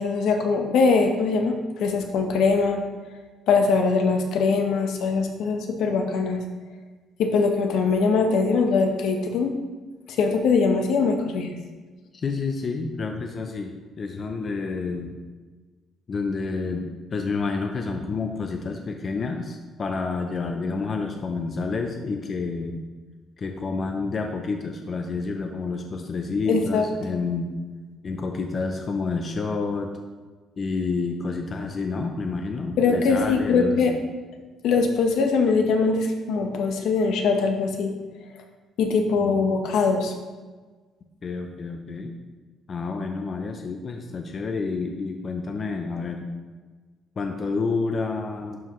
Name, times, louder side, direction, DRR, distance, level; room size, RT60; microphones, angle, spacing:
voice 1, 0.0-2.8 3.5-6.4 7.2-9.5 10.1-11.5 26.5-26.8 32.8-34.0 34.6-37.9 38.8-40.2, left 4 dB, 70° left, 4 dB, 0.9 m, -22 dB
voice 2, 12.1-15.2 16.1-22.8 23.4-27.5 28.0-29.9 30.6-34.0 39.1-39.5 41.2-42.1 42.7-46.3 47.2-48.6, left 4 dB, 35° left, 4 dB, 0.5 m, -29 dB
11.5 x 4.7 x 3.1 m, 1.4 s
cardioid pair, 160°, 0 cm